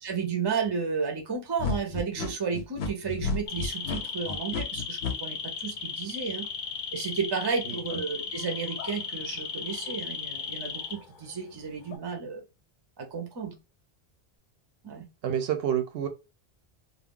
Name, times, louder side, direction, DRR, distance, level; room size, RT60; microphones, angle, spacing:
voice 1, 0.0-6.5 6.9-12.4 13.0-13.5 14.8-15.0, right 5 dB, 30° right, 0.5 m, -32 dB
sound 1, 1.6-5.1, left 4 dB, 85° left, 0.9 m, -31 dB
sound 2, 3.5-11.3 11.6-12.0, left 5 dB, 55° left, 0.6 m, -36 dB
voice 2, 7.6-8.0 15.2-16.1, right 9 dB, 80° right, 0.8 m, -29 dB
2.3 x 2.0 x 3.5 m
omnidirectional pair, 1.0 m